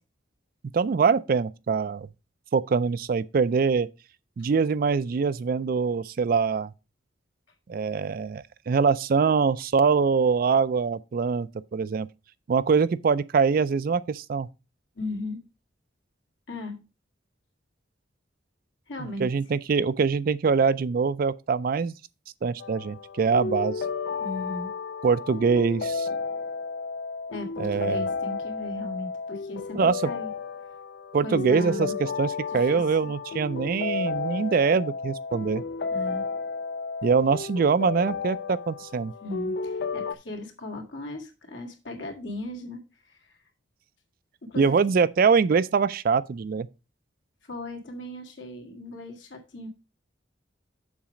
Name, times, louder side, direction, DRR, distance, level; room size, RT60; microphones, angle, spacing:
voice 1, 0.7-2.1 2.5-3.9 4.4-6.7 7.7-12.1 12.5-14.5 19.2-22.0 22.4-23.8 25.0-26.1 27.6-28.0 29.8-30.0 31.1-31.9 32.2-35.6 37.0-39.1 44.6-46.7, right 5 dB, 50° right, 0.3 m, -23 dB
voice 2, 15.0-15.4 16.5-16.8 18.9-19.3 24.2-24.7 27.3-30.3 31.2-31.9 32.5-32.9 35.9-36.3 39.2-43.4 44.4-45.0 47.5-49.7, left 2 dB, 80° left, 2.0 m, -37 dB
sound 1, 22.6-40.1, left 4 dB, 60° left, 0.4 m, -32 dB
7.3 x 4.8 x 5.0 m
head